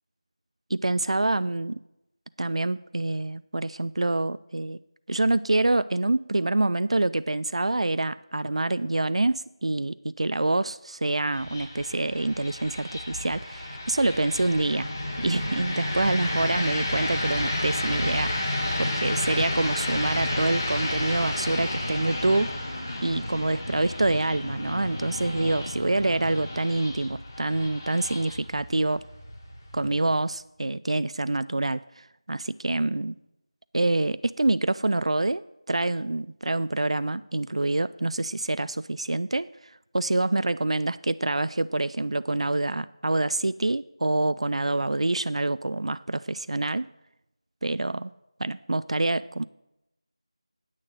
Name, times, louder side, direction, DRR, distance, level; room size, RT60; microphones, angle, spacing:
voice 1, 0.7-1.8 2.4-4.8 5.1-14.9 15.2-22.8 23.0-29.0 29.7-33.2 33.7-35.4 35.7-46.9 47.6-48.1 48.4-49.4, right 2 dB, 70° right, 15 dB, 0.3 m, -26 dB
sound 1, 11.3-30.3, left 1 dB, 25° left, 1.3 m, -31 dB
8.8 x 6.3 x 7.4 m, 0.91 s
figure-of-eight pair, 175°, 3 cm